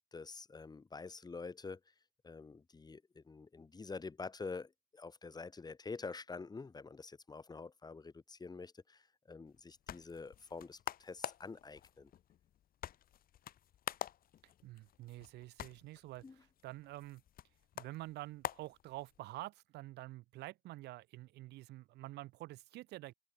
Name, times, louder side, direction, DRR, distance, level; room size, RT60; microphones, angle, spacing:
voice 1, 0.0-1.8 2.2-12.1 16.2-16.3, left 4 dB, 25° left, 5.0 m, -47 dB
sound 1, 9.5-19.4, left 11 dB, 60° left, 5.6 m, -48 dB
voice 2, 14.6-17.2 17.7-23.1, right 17 dB, 85° right, 5.0 m, -48 dB
cardioid pair, 110°, 17 cm